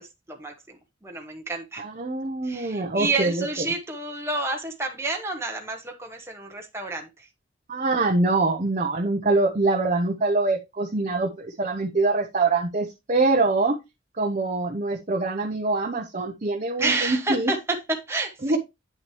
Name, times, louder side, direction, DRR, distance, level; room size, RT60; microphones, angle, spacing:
voice 1, 0.0-1.8 2.4-7.3 16.8-18.6, right 3 dB, 15° right, 1.0 m, -29 dB
voice 2, 1.8-3.5 7.7-13.8 14.2-17.5 18.4-18.6, right 3 dB, 40° right, 0.8 m, -24 dB
8.9 x 6.1 x 3.1 m
head